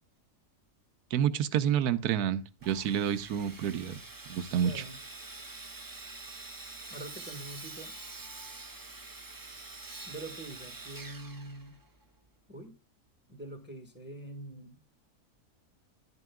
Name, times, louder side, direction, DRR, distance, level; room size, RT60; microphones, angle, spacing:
voice 1, 1.1-4.0 4.3-4.8, right 9 dB, 85° right, 1.2 m, -29 dB
Sawing, 2.6-12.1, right 3 dB, 25° right, 0.5 m, -46 dB
voice 2, 4.6-5.0 6.9-7.9 10.1-11.8 12.5-12.8 13.3-14.8, right 2 dB, 5° right, 1.4 m, -44 dB
11.5 x 11.0 x 2.3 m
omnidirectional pair, 1.6 m